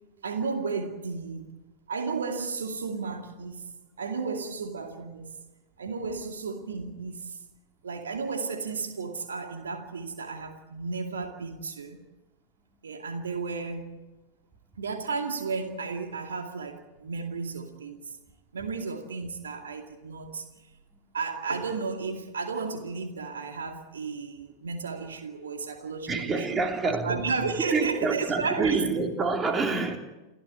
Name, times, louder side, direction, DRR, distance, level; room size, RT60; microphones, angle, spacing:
voice 1, 0.2-1.6 1.9-3.7 4.0-5.3 5.8-7.4 7.8-12.0 12.8-14.0 14.8-18.1 18.5-20.5 21.1-26.6 26.8-28.8, right 4 dB, 70° right, 2.4 m, -33 dB
voice 2, 26.1-27.3 27.7-30.0, right 4 dB, 20° right, 3.1 m, -27 dB
29.5 x 15.0 x 8.6 m
figure-of-eight pair, 90°, 0 cm